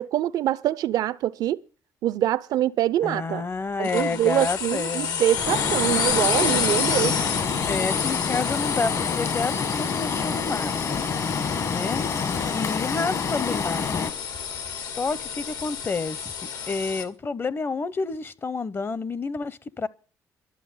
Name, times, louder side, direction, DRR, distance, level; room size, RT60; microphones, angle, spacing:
voice 1, 0.0-1.6 2.0-3.5 3.8-7.2, right 12 dB, 75° right, 0.6 m, -24 dB
voice 2, 3.0-5.2 7.7-11.1 11.7-12.0 12.5-14.1 14.8-19.9, left 4 dB, 35° left, 0.9 m, -29 dB
sound 1, 3.8-17.0, left 6 dB, 70° left, 1.8 m, -29 dB
Stream, 5.3-14.1, left 5 dB, 50° left, 1.7 m, -28 dB
12.0 x 7.1 x 9.8 m
cardioid pair, 80°, 7 cm